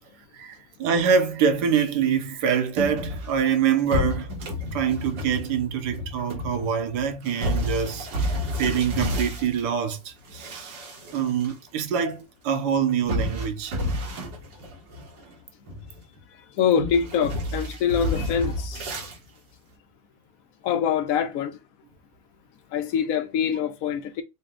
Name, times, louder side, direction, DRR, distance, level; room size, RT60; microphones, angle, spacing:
voice 1, 0.3-4.3 4.7-10.8 11.1-13.8, right 7 dB, 70° right, 1.3 m, -25 dB
sound 1, 2.8-9.7 10.2-11.5 11.8-11.9 13.1-15.3 15.7-16.2 16.8-19.2, left 1 dB, 90° right, 1.9 m, -31 dB
voice 2, 16.3-18.8 20.6-21.6 22.7-24.2, left 7 dB, 70° left, 0.8 m, -25 dB
4.1 x 2.2 x 3.6 m
omnidirectional pair, 1.9 m